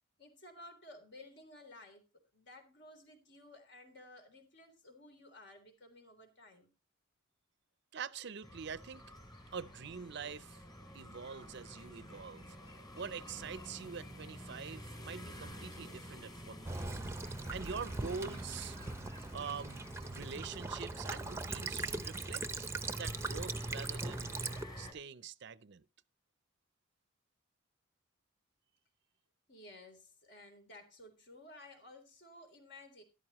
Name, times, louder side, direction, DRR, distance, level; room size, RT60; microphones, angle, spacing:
voice 1, 0.2-2.0 2.3-6.7 29.5-33.0, left 1 dB, 55° left, 3.6 m, -55 dB
voice 2, 7.9-9.0 9.5-10.6 10.9-12.6 12.9-17.0 17.5-18.8 19.3-22.7 23.0-24.3 24.8-25.8, right 6 dB, 55° right, 0.5 m, -45 dB
sound 1, 8.4-24.9, equal, 20° left, 3.2 m, -50 dB
Child speech kid speaking / Bird vocalization bird call bird song / Stream, 16.7-24.6, right 3 dB, 15° right, 0.7 m, -40 dB
13.5 x 11.5 x 3.0 m
head